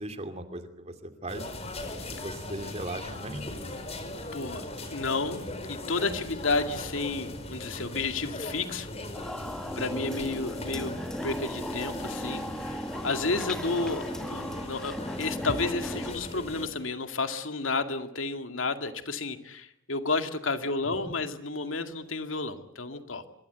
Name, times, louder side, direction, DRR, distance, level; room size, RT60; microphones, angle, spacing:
voice 1, 0.0-1.5 2.1-3.4 9.7-10.1 20.8-21.1, right 1 dB, 35° right, 7 dB, 2.7 m, -38 dB
sound 1, 1.3-16.7, left 1 dB, 35° left, 4.5 m, -39 dB
voice 2, 4.3-8.9 9.8-10.9 11.2-23.2, left 3 dB, 90° left, 7 dB, 2.3 m, -31 dB
sound 2, 9.1-16.1, equal, 5° left, 2.1 m, -36 dB
25.0 x 23.0 x 8.2 m, 0.73 s
head